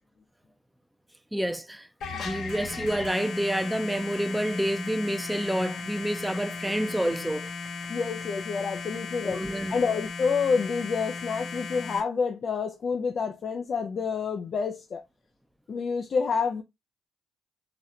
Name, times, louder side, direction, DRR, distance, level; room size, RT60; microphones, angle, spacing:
voice 1, 1.3-1.9 2.2-7.5 9.2-9.8, equal, 5° right, 0.6 m, -28 dB
sound 1, 2.0-12.0, left 4 dB, 70° left, 1.4 m, -36 dB
voice 2, 7.9-9.4 9.7-15.0 15.7-16.6, left 5 dB, 50° left, 0.5 m, -28 dB
4.0 x 3.2 x 2.8 m
cardioid pair, 90°, 0 cm